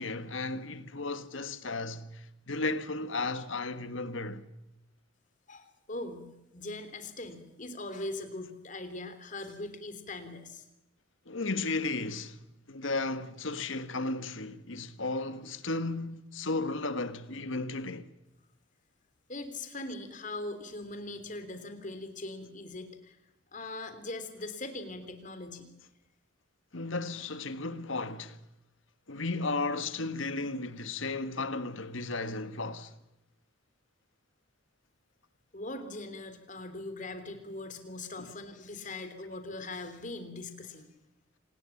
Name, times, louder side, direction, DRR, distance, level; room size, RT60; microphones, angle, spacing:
voice 1, 0.0-4.5 11.2-12.4 12.7-18.1 26.7-28.4 29.1-32.9 38.2-38.3, left 3 dB, 75° left, 1.7 m, -34 dB
voice 2, 5.5-6.3 6.5-10.7 19.3-23.2 23.5-25.7 35.5-40.9, left 2 dB, 40° left, 3.4 m, -41 dB
27.5 x 20.0 x 7.3 m
head